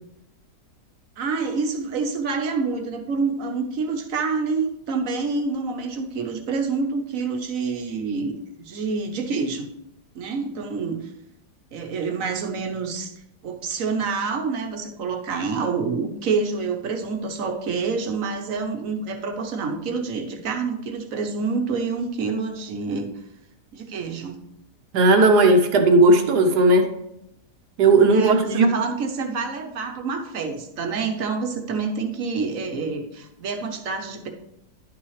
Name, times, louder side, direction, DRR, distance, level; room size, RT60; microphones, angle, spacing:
voice 1, 1.2-9.7 10.1-11.0 11.7-13.1 13.4-23.1 23.7-24.4 28.1-34.3, right 4 dB, 60° right, 4 dB, 1.4 m, -27 dB
voice 2, 24.9-26.9 27.8-28.7, right 2 dB, 85° right, 4 dB, 1.5 m, -16 dB
11.0 x 5.9 x 3.2 m, 0.82 s
omnidirectional pair, 1.7 m